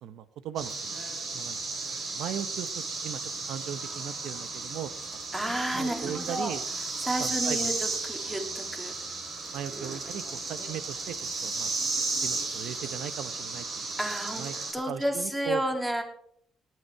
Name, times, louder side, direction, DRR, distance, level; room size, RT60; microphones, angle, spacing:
voice 1, 0.0-1.0 1.3-1.7 2.1-4.9 5.7-6.6 7.2-7.8 9.5-11.2 11.4-11.7 12.2-13.9 14.4-14.5 14.9-15.6, right 10 dB, 85° right, 14 dB, 0.9 m, -38 dB
sound 1, 0.6-14.7, right 3 dB, 55° right, 4.4 m, -34 dB
voice 2, 5.3-6.5 7.0-7.7 8.1-8.9 9.7-10.0 14.0-16.0, right 1 dB, 10° right, 4 dB, 2.8 m, -31 dB
18.5 x 9.6 x 4.6 m, 0.63 s
cardioid pair, 90°, 0 cm